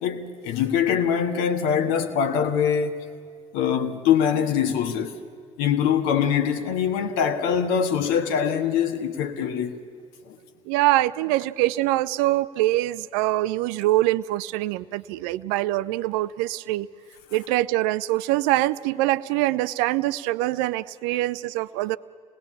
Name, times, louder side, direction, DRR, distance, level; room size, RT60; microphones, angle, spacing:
voice 1, 0.0-3.0 3.5-5.2 5.6-9.8 10.3-10.4, left 8 dB, 65° left, 1.4 m, -23 dB
voice 2, 10.7-16.9 17.3-22.0, right 17 dB, 60° right, 0.5 m, -24 dB
26.5 x 19.5 x 8.5 m
figure-of-eight pair, 50°, 17 cm